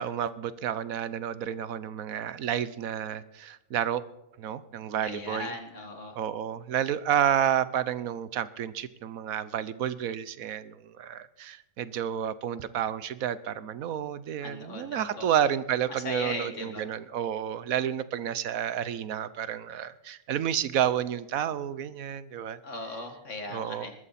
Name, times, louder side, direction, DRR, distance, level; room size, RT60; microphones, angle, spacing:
voice 1, 0.0-4.0 4.4-5.5 6.1-22.6 23.5-23.9, right 9 dB, 80° right, 15 dB, 1.2 m, -30 dB
voice 2, 5.0-6.2 14.4-15.3 15.9-16.9 22.6-23.9, left 2 dB, 60° left, 4 dB, 2.3 m, -38 dB
20.0 x 14.0 x 4.2 m, 0.88 s
omnidirectional pair, 1.5 m